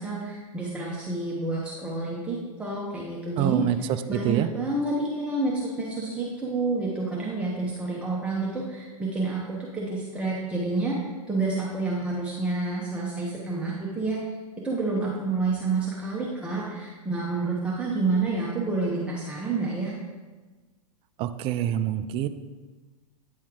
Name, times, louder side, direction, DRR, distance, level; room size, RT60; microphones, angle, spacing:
voice 1, 0.0-3.6 4.1-14.2 14.6-19.9, right 3 dB, 5° right, -6 dB, 1.0 m, -29 dB
voice 2, 3.4-3.8 4.1-4.5 21.2-22.3, right 12 dB, 30° right, 10 dB, 0.4 m, -26 dB
9.1 x 4.3 x 3.6 m, 1.3 s
hypercardioid pair, 110°, 20 cm